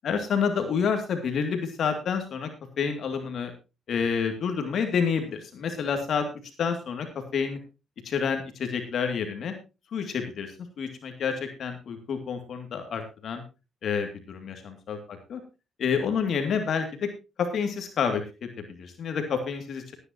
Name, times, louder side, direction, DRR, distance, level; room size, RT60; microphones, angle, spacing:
voice 1, 0.0-2.5 2.8-3.5 3.9-6.3 6.6-7.1 7.3-7.6 8.0-9.5 9.9-13.4 13.8-15.4 15.8-17.1 17.4-19.9, left 6 dB, 60° left, 5 dB, 2.4 m, -29 dB
18.5 x 9.8 x 2.9 m, 0.28 s
cardioid pair, 90°, 0 cm